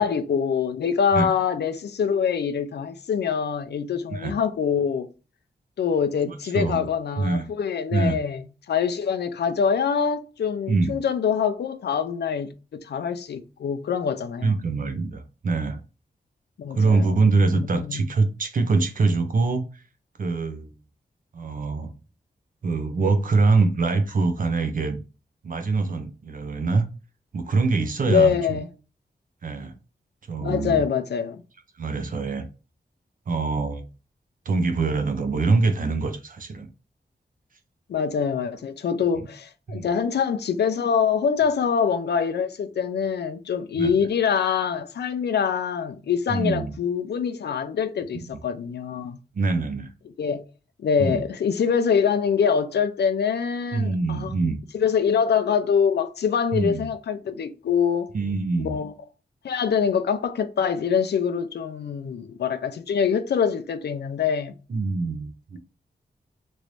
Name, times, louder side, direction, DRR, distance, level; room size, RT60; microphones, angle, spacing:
voice 1, 0.0-5.1 5.8-14.5 16.6-17.1 17.5-18.0 28.1-28.6 30.4-31.4 37.9-49.2 50.2-50.4 50.8-54.3 54.7-58.1 58.6-58.9 59.4-64.6, left 7 dB, 80° left, 0.5 m, -24 dB
voice 2, 6.2-6.8 7.2-7.5 7.9-8.2 10.7-10.9 14.4-15.8 16.7-19.8 20.2-20.7 21.3-21.9 22.6-25.0 25.4-26.9 27.3-28.6 29.4-29.7 30.3-30.8 31.8-32.5 33.3-33.9 34.5-36.7 39.1-39.3 39.7-39.9 43.8-43.9 46.3-46.7 49.3-49.9 51.0-51.2 53.7-54.6 56.5-56.9 58.1-58.8 64.7-65.6, right 3 dB, 55° right, 0.6 m, -24 dB
3.1 x 2.6 x 3.1 m
wide cardioid pair, 165°, 17 cm